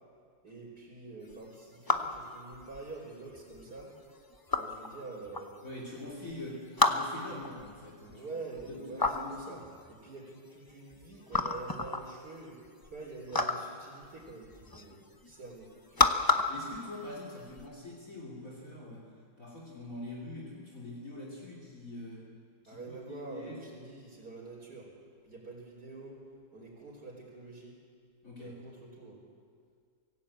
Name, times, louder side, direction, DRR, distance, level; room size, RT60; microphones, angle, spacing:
voice 1, 0.4-3.9 4.6-5.5 8.1-9.6 9.9-15.7 16.0-16.1 22.7-24.9 25.2-26.2 26.5-27.8 28.4-29.2, right 3 dB, 55° right, -7 dB, 4.2 m, -46 dB
sound 1, 1.3-17.7, left 2 dB, 20° left, 0.5 m, -33 dB
voice 2, 5.6-8.2 8.7-9.7 16.5-19.1 19.4-22.3 22.6-23.6 28.2-28.6, left 1 dB, 45° left, -2 dB, 3.4 m, -44 dB
24.5 x 16.5 x 8.6 m, 2.1 s
omnidirectional pair, 2.0 m